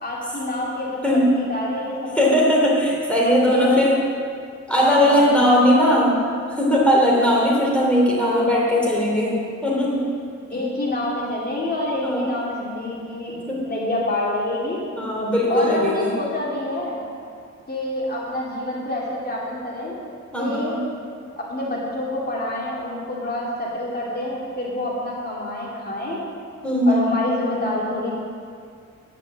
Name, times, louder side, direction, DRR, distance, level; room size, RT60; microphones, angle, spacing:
voice 1, 0.0-2.6 3.2-3.8 4.8-6.0 8.2-8.5 10.5-14.8 15.5-17.0 17.7-19.9 20.4-20.8 21.4-26.2 26.9-28.1, left 1 dB, 30° left, -4 dB, 2.7 m, -27 dB
voice 2, 2.1-3.9 4.7-10.1 10.5-10.6 12.0-12.4 13.5-13.6 15.0-16.1 20.3-20.8 26.6-27.1, equal, 5° left, -5 dB, 3.1 m, -19 dB
10.5 x 8.5 x 7.5 m, 2.2 s
cardioid pair, 105°, 30 cm